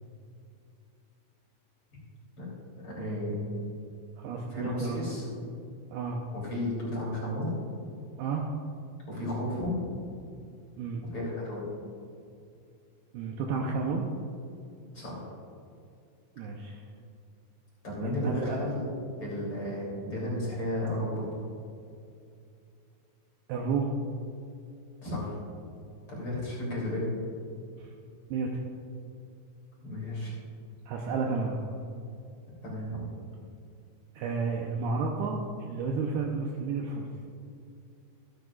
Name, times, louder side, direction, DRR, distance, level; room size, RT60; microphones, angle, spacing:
voice 1, 2.8-3.5 4.5-5.2 6.3-7.5 9.1-9.7 11.1-11.8 14.9-15.2 17.8-18.8 19.2-21.3 25.0-25.3 26.1-27.2 29.8-30.3 32.6-33.1, left 1 dB, 30° left, -6 dB, 3.3 m, -33 dB
voice 2, 4.2-5.2 5.9-6.2 8.2-8.5 10.8-11.0 13.1-14.1 16.4-16.8 18.0-18.6 23.5-24.0 27.8-27.9 28.3-28.6 30.9-31.6 34.2-35.4 35.7-37.1, right 4 dB, 80° right, 0 dB, 2.4 m, -31 dB
15.0 x 13.0 x 2.4 m, 2.4 s
omnidirectional pair, 5.2 m